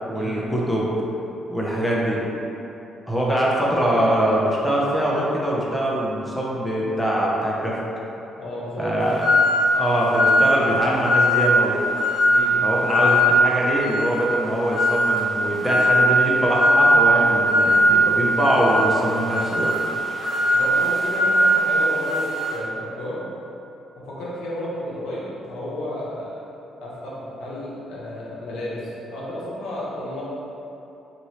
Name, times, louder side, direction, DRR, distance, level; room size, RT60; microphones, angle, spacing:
voice 1, 0.1-0.9 1.5-2.3 3.1-7.7 8.8-9.2 9.7-11.8 12.6-19.7, right 1 dB, 5° left, -5 dB, 0.7 m, -23 dB
voice 2, 8.4-9.1 12.3-12.6 20.5-23.3 24.0-26.3 26.8-30.2, left 1 dB, 85° left, -7 dB, 0.9 m, -32 dB
sound 1, 9.2-9.7 10.1-10.6 11.0-11.5 12.0-12.4 12.9-13.3 13.8-14.2 14.7-15.2 15.6-16.1 16.5-17.0 17.5-17.9 18.4-22.6, left 1 dB, 45° right, 1.2 m, -19 dB
3.0 x 2.6 x 4.1 m, 3.0 s
cardioid pair, 90°, 0 cm